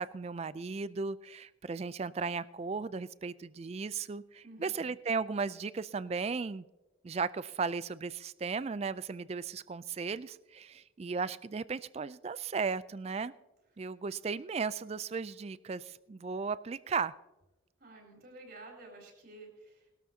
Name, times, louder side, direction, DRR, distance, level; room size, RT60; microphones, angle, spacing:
voice 1, 0.0-6.6 7.0-13.3 13.8-17.2, right 5 dB, 30° right, 17 dB, 0.3 m, -36 dB
voice 2, 4.4-5.0 17.8-19.9, right 2 dB, 55° right, -1 dB, 4.3 m, -51 dB
19.5 x 13.0 x 2.8 m, 1.1 s
head